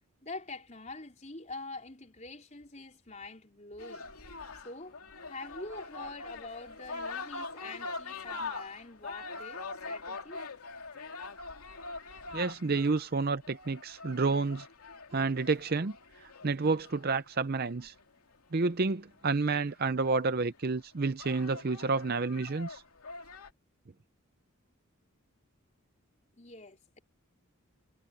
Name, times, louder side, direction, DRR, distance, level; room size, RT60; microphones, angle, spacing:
voice 1, 0.2-4.1 4.6-5.0 5.3-10.4 26.4-27.0, left 2 dB, 30° left, 4.7 m, -45 dB
sound 1, 3.8-18.0 19.5-19.6 20.0-20.5 21.0-23.5, left 3 dB, 85° left, 2.8 m, -43 dB
voice 2, 12.3-14.7 15.1-15.9 16.4-17.9 18.5-22.8, right 4 dB, 45° right, 0.6 m, -29 dB
head